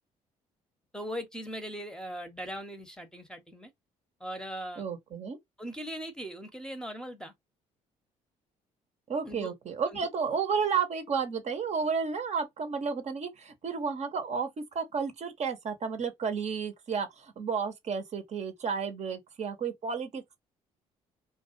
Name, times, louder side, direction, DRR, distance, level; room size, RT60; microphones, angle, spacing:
voice 1, 0.9-3.7 4.2-4.8 5.6-7.3 9.2-9.5 9.9-10.0, equal, 5° left, 0.7 m, -39 dB
voice 2, 4.8-5.4 9.1-20.4, right 6 dB, 45° right, 0.7 m, -32 dB
2.3 x 2.2 x 2.6 m
supercardioid pair, 60°, 15 cm